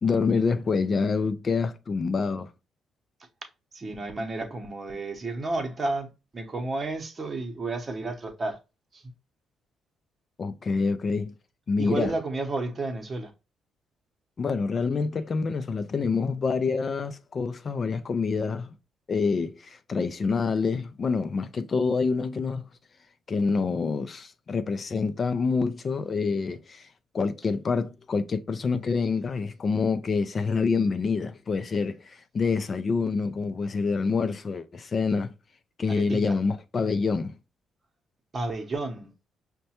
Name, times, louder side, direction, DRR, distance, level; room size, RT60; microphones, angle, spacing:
voice 1, 0.0-2.5 10.4-11.3 11.7-12.1 14.4-18.7 19.1-22.6 23.3-26.9 27.1-35.3 35.8-37.3, left 4 dB, 40° left, 0.4 m, -27 dB
voice 2, 3.7-8.6 8.9-9.0 11.8-13.3 35.9-36.4 38.3-39.1, right 2 dB, 35° right, 0.8 m, -31 dB
5.2 x 2.2 x 2.8 m
cardioid pair, 90°, 0 cm